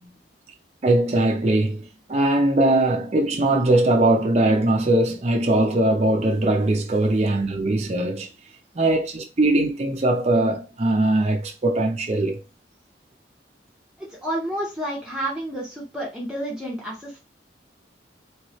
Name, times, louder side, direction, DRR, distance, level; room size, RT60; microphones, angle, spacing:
voice 1, 0.8-8.3 8.7-12.4, right 2 dB, 35° right, 0.5 m, -21 dB
voice 2, 14.1-17.2, right 1 dB, 5° right, 0.8 m, -30 dB
3.2 x 3.1 x 3.0 m
head